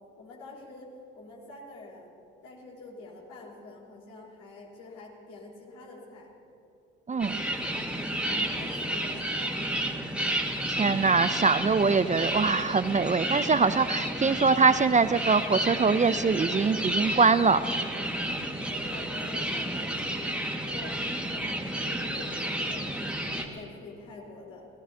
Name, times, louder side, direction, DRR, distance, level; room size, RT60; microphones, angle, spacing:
voice 1, 0.2-2.1 2.4-6.3 7.1-7.3 7.6-9.7 18.1-24.7, left 2 dB, 65° left, -3 dB, 4.5 m, -46 dB
sound 1, 7.2-23.4, right 1 dB, 5° right, 2.0 m, -31 dB
voice 2, 10.8-17.6, right 4 dB, 25° right, 13 dB, 0.5 m, -23 dB
27.5 x 17.5 x 2.9 m, 2.8 s
hypercardioid pair, 55°, 32 cm